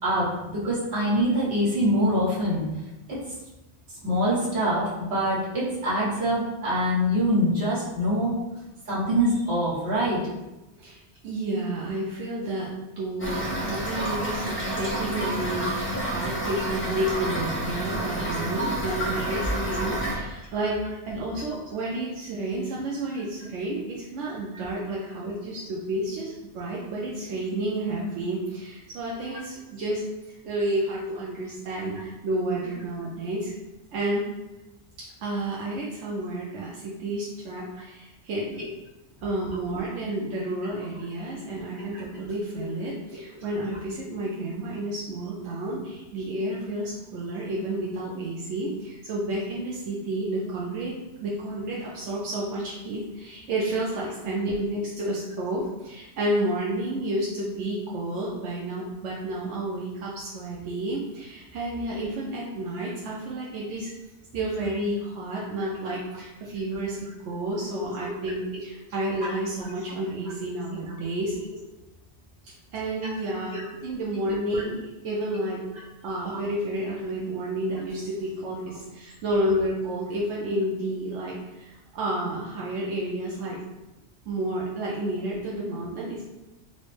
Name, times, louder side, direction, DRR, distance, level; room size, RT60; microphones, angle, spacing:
voice 1, 0.0-2.6 4.0-8.3 8.9-10.2 16.4-16.6 19.1-19.2 19.6-19.8 29.3-29.4 41.8-42.0 43.1-43.2 68.3-68.4 69.2-69.3 73.0-73.1 73.5-73.6 74.5-74.6, equal, 65° right, -8 dB, 1.5 m, -25 dB
voice 2, 10.8-12.7 13.0-30.0 30.4-33.5 33.9-34.2 35.2-38.6 39.2-63.9 64.3-71.4 72.7-75.7 76.0-83.6 84.3-86.2, right 1 dB, 85° right, -5 dB, 0.9 m, -30 dB
Toilet flush / Fill (with liquid), 13.2-20.2, right 1 dB, 20° left, 0.3 m, -29 dB
4.2 x 2.0 x 3.1 m, 1.0 s
omnidirectional pair, 1.2 m